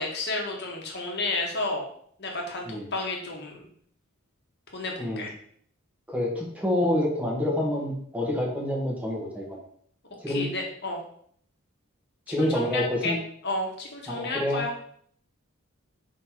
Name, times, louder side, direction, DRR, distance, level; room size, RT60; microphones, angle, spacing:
voice 1, 0.0-1.8 2.2-3.7 4.7-5.3 10.3-11.0 12.3-13.2 13.4-14.7, left 2 dB, 50° left, 0 dB, 1.6 m, -31 dB
voice 2, 6.1-9.6 10.2-10.5 12.3-13.2 14.1-14.6, left 1 dB, 5° right, -2 dB, 1.5 m, -27 dB
5.6 x 4.1 x 4.6 m, 0.62 s
head